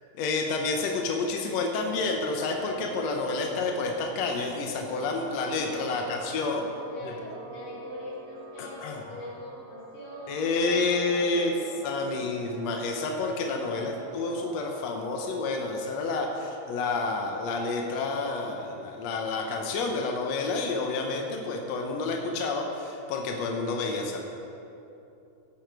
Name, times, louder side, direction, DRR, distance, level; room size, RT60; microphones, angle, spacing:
voice 1, 0.1-6.6 7.0-7.1 8.6-9.0 10.3-11.5 11.8-24.2, left 3 dB, 80° left, 2 dB, 1.5 m, -29 dB
sound 1, 1.8-16.7, right 2 dB, 60° right, 2.9 m, -45 dB
voice 2, 5.9-6.5 6.9-12.5 13.7-14.1, left 1 dB, 40° left, -7 dB, 4.0 m, -43 dB
16.0 x 9.0 x 4.8 m, 2.8 s
omnidirectional pair, 4.5 m